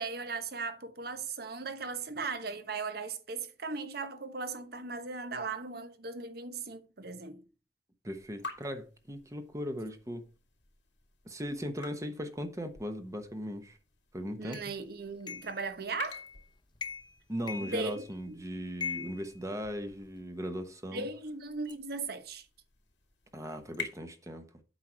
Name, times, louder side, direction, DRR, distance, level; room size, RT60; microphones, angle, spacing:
voice 1, 0.0-7.4 14.4-16.2 17.6-18.0 18.3-18.4 20.9-22.5, right 4 dB, 60° right, 1.1 m, -38 dB
voice 2, 8.0-10.2 11.2-13.8 14.1-14.6 17.3-21.1 23.3-24.5, equal, 20° right, 0.9 m, -38 dB
sound 1, 8.1-24.0, left 4 dB, 90° left, 2.5 m, -50 dB
sound 2, 14.5-14.7 15.3-15.6 16.1-16.4 16.8-17.2 17.5-18.3 18.8-20.1, left 6 dB, 25° left, 0.8 m, -41 dB
8.2 x 4.7 x 6.0 m
head